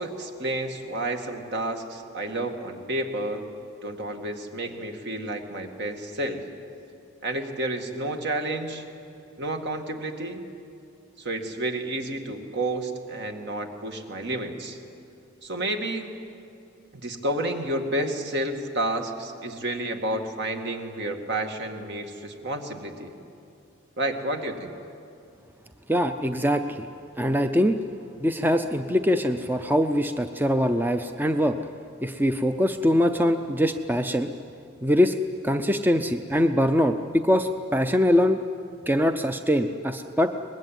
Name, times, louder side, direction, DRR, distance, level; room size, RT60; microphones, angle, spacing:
voice 1, 0.0-3.4 3.8-6.5 7.2-8.8 9.4-10.4 11.2-14.8 15.4-16.1 16.9-23.1 24.0-24.7, right 1 dB, 60° right, 4 dB, 2.2 m, -30 dB
voice 2, 25.9-26.9 27.2-27.8 28.2-31.6 32.0-34.3 34.8-35.1 35.4-38.4 38.9-40.3, equal, 10° right, 7 dB, 0.6 m, -23 dB
24.0 x 20.5 x 9.2 m, 2.6 s
head